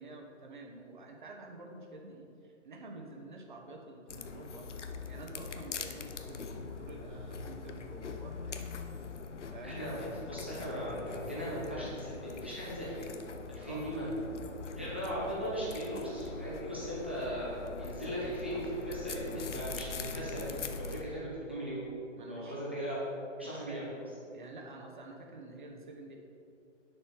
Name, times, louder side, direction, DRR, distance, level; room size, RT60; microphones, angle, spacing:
voice 1, 0.0-8.7 9.5-9.8 13.6-13.9 14.8-14.9 22.2-22.9 23.4-23.9 24.3-26.2, right 2 dB, 40° right, 2 dB, 1.2 m, -49 dB
sound 1, 4.1-21.0, left 4 dB, 65° left, 0.9 m, -42 dB
voice 2, 9.6-13.2 13.5-14.1 14.7-21.8 22.3-23.0 23.4-24.0, equal, 10° right, -8 dB, 0.6 m, -38 dB
9.2 x 6.7 x 4.8 m, 2.7 s
hypercardioid pair, 175°, 38 cm